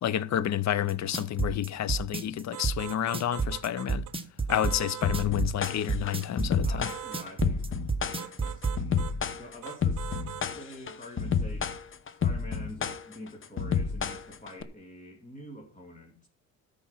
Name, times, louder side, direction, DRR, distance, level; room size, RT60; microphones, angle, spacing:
voice 1, 0.0-4.0 4.5-6.9, left 11 dB, 55° left, 0.8 m, -29 dB
sound 1, 0.9-8.8, right 4 dB, 15° right, 1.3 m, -30 dB
sound 2, 2.5-4.1 4.5-5.3 6.8-7.3 8.2-9.2 9.6-10.5, right 12 dB, 65° right, 0.9 m, -41 dB
sound 3, 5.0-14.6, left 6 dB, 40° left, 1.1 m, -30 dB
voice 2, 6.3-9.0 9.3-10.1 10.4-11.8 12.2-16.3, left 1 dB, 25° left, 2.5 m, -47 dB
13.5 x 5.4 x 5.7 m
cardioid pair, 100°, 33 cm